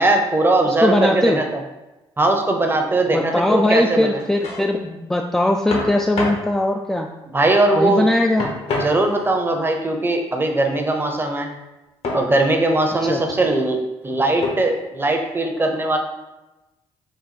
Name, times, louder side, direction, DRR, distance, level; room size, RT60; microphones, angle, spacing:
voice 1, 0.0-1.4 2.2-4.2 7.3-8.1 8.8-11.5 12.1-16.0, right 2 dB, 20° right, 3 dB, 0.7 m, -20 dB
voice 2, 0.7-1.4 3.1-7.1 7.8-8.5 13.0-13.2, left 1 dB, 5° left, 2 dB, 0.3 m, -20 dB
sound 1, 4.0-4.6 5.7-6.5 8.4-9.4 12.0-12.3 13.0-13.5 14.4-14.8, left 2 dB, 60° left, 1.0 m, -28 dB
4.1 x 2.2 x 4.1 m, 1.0 s
supercardioid pair, 70°, 11 cm